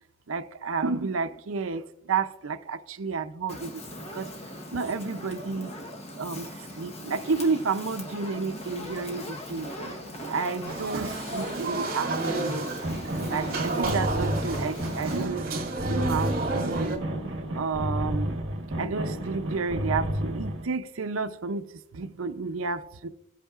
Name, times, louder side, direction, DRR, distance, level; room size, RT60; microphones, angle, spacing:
voice 1, 0.3-3.7 4.1-4.3 4.7-5.7 6.2-6.5 6.7-12.7 13.3-15.5 15.9-17.0 17.3-18.3 18.8-21.7 21.9-23.1, right 4 dB, 75° right, 0.6 m, -31 dB
Fire, 3.5-15.2, left 1 dB, 30° left, 1.1 m, -40 dB
sound 1, 10.7-17.0, right 3 dB, 45° right, 2.4 m, -31 dB
sound 2, 12.8-20.7, equal, 60° right, 1.2 m, -31 dB
17.5 x 8.3 x 2.5 m
head